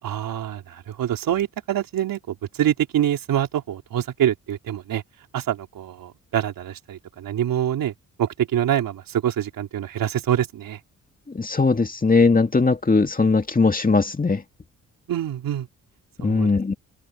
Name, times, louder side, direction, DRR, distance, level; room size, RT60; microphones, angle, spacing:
voice 1, 0.0-5.0 5.3-7.9 8.2-10.8 15.1-15.7 16.2-16.5, right 11 dB, 75° right, 3.9 m, -25 dB
voice 2, 11.3-14.4 16.2-16.7, left 3 dB, 25° left, 2.3 m, -19 dB
supercardioid pair, 65°, 34 cm